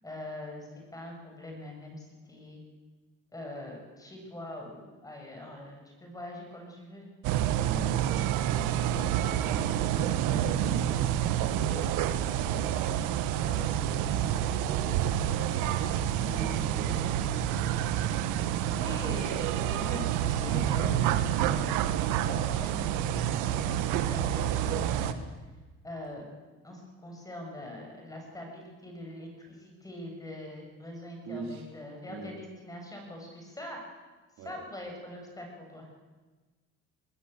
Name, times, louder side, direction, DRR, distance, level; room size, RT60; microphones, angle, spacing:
voice 1, 0.0-2.6 3.3-7.1 18.7-21.9 22.2-25.2 25.8-26.3 26.6-33.8 34.4-35.9, left 1 dB, 10° left, 1 dB, 7.8 m, -43 dB
sound 1, 7.2-25.1, right 11 dB, 85° right, 1.7 m, -28 dB
voice 2, 7.6-10.9 11.4-15.2 15.5-17.3 31.2-31.7 32.0-32.3 34.4-34.6, right 3 dB, 65° right, 1 dB, 5.1 m, -43 dB
20.5 x 19.5 x 8.6 m, 1.3 s
cardioid pair, 120°, 30 cm